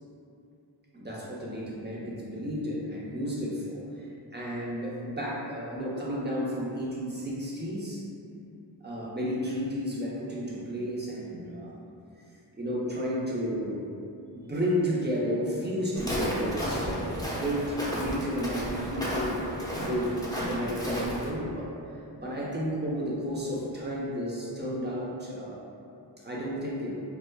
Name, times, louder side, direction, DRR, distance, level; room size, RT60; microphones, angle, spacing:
voice 1, 0.9-4.1 4.3-8.0 8.8-11.7 12.5-13.9 14.3-21.7 22.2-25.6 26.2-27.0, equal, 25° right, -6 dB, 0.8 m, -32 dB
Walk footsteps, 15.9-21.3, equal, 10° left, 0.8 m, -33 dB
4.9 x 2.1 x 2.2 m, 2.7 s
cardioid pair, 45°, 45 cm